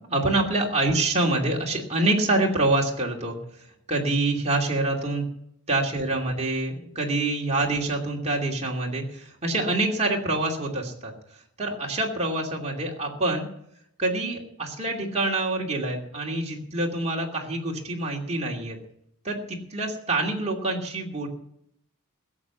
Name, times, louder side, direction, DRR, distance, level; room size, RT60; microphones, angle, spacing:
voice 1, 0.0-3.4 3.9-5.2 5.7-11.1 11.6-13.5 14.0-18.8 19.2-21.3, right 2 dB, 30° right, -2 dB, 2.7 m, -26 dB
16.0 x 7.6 x 8.3 m, 0.72 s
head